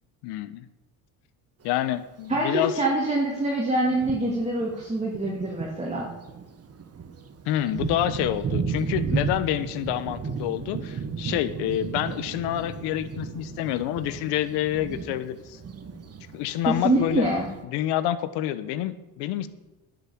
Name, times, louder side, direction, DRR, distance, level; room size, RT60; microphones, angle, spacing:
voice 1, 0.2-0.7 1.6-2.7 7.5-15.6 16.3-17.3 17.6-19.5, left 12 dB, 85° left, 14 dB, 1.1 m, -28 dB
Thunder, 1.6-1.8 2.7-2.8 3.4-3.5 3.9-17.6, right 5 dB, 40° right, 1.6 m, -34 dB
voice 2, 2.3-6.1 16.6-17.5, right 1 dB, 15° right, -3 dB, 2.7 m, -25 dB
10.5 x 8.0 x 8.6 m, 1.1 s
supercardioid pair, 90°, 39 cm